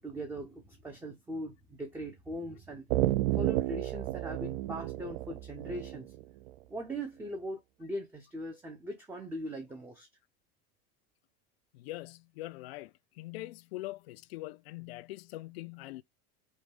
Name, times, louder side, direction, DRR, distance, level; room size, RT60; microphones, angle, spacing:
voice 1, 0.0-2.8 3.4-6.1 6.7-10.1, right 1 dB, 5° right, 0.5 m, -40 dB
sound 1, 2.9-6.5, right 15 dB, 65° right, 0.5 m, -31 dB
voice 2, 11.8-12.9 13.2-16.0, left 18 dB, 90° left, 0.5 m, -42 dB
5.4 x 2.2 x 3.3 m
supercardioid pair, 155°, 30 cm